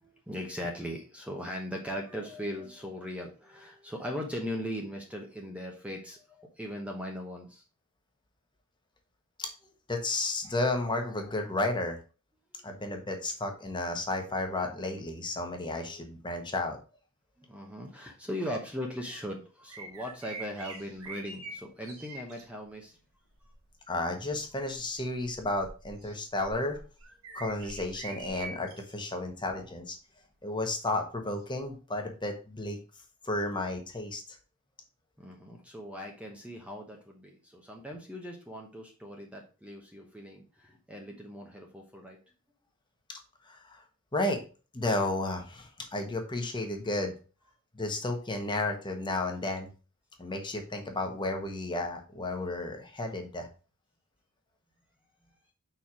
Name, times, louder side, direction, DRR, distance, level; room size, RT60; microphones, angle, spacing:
voice 1, 0.0-7.6 17.4-23.0 35.2-42.2, equal, 5° right, 1 dB, 0.9 m, -39 dB
voice 2, 9.9-12.0 12.6-16.8 23.9-26.8 27.3-30.0 30.4-32.8 33.2-34.2 43.5-43.8 44.1-44.4 44.7-47.1 47.7-49.7 50.2-53.5, left 2 dB, 20° left, 4 dB, 1.2 m, -32 dB
sound 1, 19.7-22.4 23.3-23.6 24.3-28.9 29.4-29.6 31.4-31.5, right 2 dB, 70° right, 1.4 m, -45 dB
5.6 x 4.5 x 4.8 m, 0.34 s
head